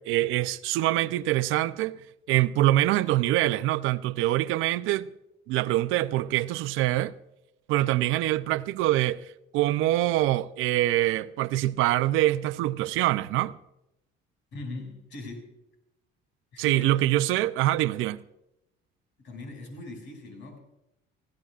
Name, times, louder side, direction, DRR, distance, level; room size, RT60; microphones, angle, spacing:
voice 1, 0.1-2.0 2.3-5.1 5.5-7.1 7.7-9.2 9.5-13.6 16.6-18.2, right 15 dB, 80° right, 0.6 m, -24 dB
voice 2, 14.5-15.5 16.5-17.0 19.2-20.6, left 2 dB, 65° left, 6.4 m, -40 dB
24.0 x 16.5 x 2.5 m
cardioid pair, 145°, 20 cm